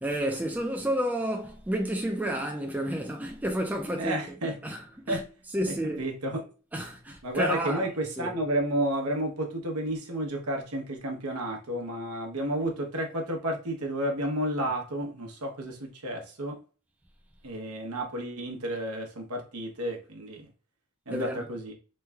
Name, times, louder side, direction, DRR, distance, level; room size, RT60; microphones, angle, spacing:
voice 1, 0.0-4.2 4.4-5.2 5.5-6.0 6.7-7.9 8.2-8.3 21.1-21.5, equal, 10° right, 0.4 m, -30 dB
voice 2, 4.0-4.6 5.1-5.2 6.0-6.5 7.2-16.6 17.4-20.5 21.1-21.7, right 1 dB, 85° right, 0.9 m, -31 dB
3.1 x 2.2 x 3.3 m
head